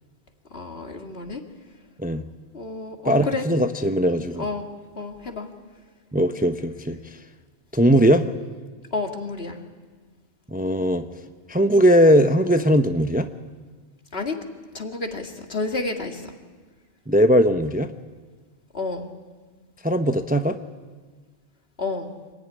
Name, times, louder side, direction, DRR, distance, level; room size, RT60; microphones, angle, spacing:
voice 1, 0.5-1.4 2.5-3.5 4.4-4.7 5.0-5.5 8.9-9.6 14.1-14.4 14.7-16.3 18.7-19.1 21.8-22.1, left 3 dB, 60° left, 4 dB, 2.5 m, -30 dB
voice 2, 3.0-4.4 6.1-7.2 7.7-8.3 10.5-11.0 11.5-13.3 17.1-17.9 19.8-20.6, equal, 10° right, 8 dB, 0.8 m, -19 dB
26.5 x 19.5 x 9.8 m, 1.4 s
omnidirectional pair, 1.2 m